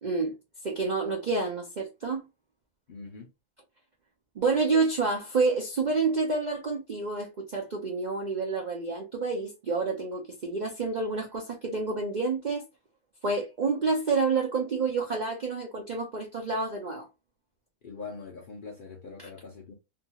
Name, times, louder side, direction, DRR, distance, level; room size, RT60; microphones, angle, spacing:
voice 1, 0.0-0.3 0.6-2.3 4.4-12.6 13.2-17.1 19.2-19.3, right 4 dB, 60° right, 0.4 m, -28 dB
voice 2, 2.9-3.3 17.8-19.7, left 4 dB, 55° left, 0.5 m, -42 dB
2.8 x 2.3 x 2.8 m
omnidirectional pair, 1.5 m